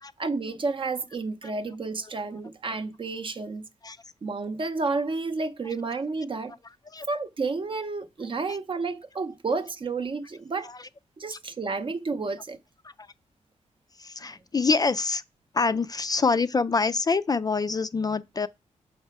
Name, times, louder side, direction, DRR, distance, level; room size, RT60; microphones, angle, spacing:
voice 1, 0.2-3.7 4.2-6.5 7.1-10.7 11.2-12.6, right 3 dB, 40° right, 0.6 m, -31 dB
voice 2, 14.0-15.2 15.5-18.5, left 4 dB, 30° left, 0.3 m, -25 dB
5.7 x 4.3 x 4.6 m
cardioid pair, 60°, 13 cm